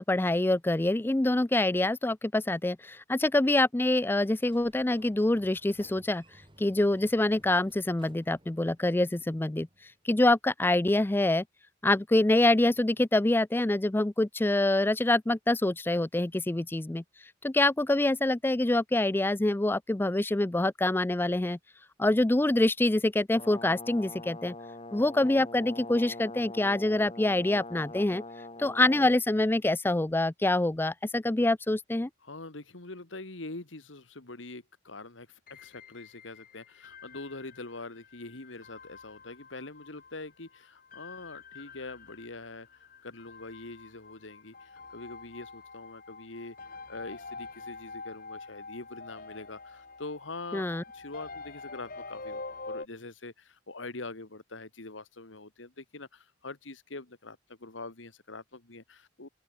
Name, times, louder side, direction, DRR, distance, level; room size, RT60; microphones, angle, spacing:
voice 1, 0.0-6.2 6.6-9.7 10.0-11.4 11.8-17.0 17.4-21.6 22.0-24.5 24.9-28.2 28.6-32.1 50.5-50.8, left 2 dB, 10° left, 0.4 m, -25 dB
Sliding door, 4.4-10.0, right 1 dB, 25° right, 5.8 m, -59 dB
Brass instrument, 23.4-29.2, left 2 dB, 30° left, 5.7 m, -43 dB
voice 2, 32.2-59.3, left 2 dB, 85° left, 2.1 m, -44 dB
sound 1, 35.5-52.9, left 3 dB, 50° left, 4.0 m, -46 dB
open air
head